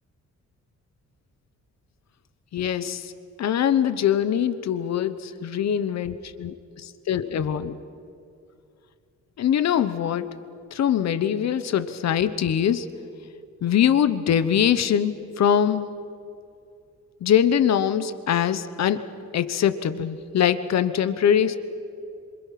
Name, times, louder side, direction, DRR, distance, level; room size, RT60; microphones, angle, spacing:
voice 1, 2.5-3.1 3.4-7.7 9.4-10.4 10.7-12.9 13.6-16.0 17.2-19.0 19.3-21.6, left 9 dB, 60° left, 12 dB, 1.0 m, -23 dB
28.0 x 26.5 x 5.9 m, 2.5 s
wide cardioid pair, 180°, 30 cm